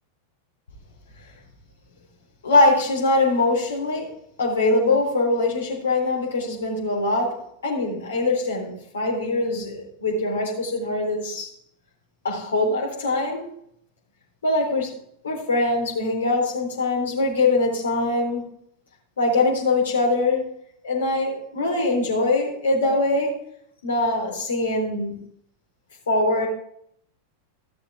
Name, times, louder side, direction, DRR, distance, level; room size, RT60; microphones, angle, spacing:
voice 1, 2.4-4.1 4.4-11.5 12.2-13.4 14.4-15.0 15.2-18.4 19.2-20.5 20.8-23.3 23.8-25.1 26.1-26.5, left 2 dB, 65° left, -1 dB, 3.7 m, -22 dB
14.5 x 6.9 x 3.6 m, 0.68 s
figure-of-eight pair, 90°, 0 cm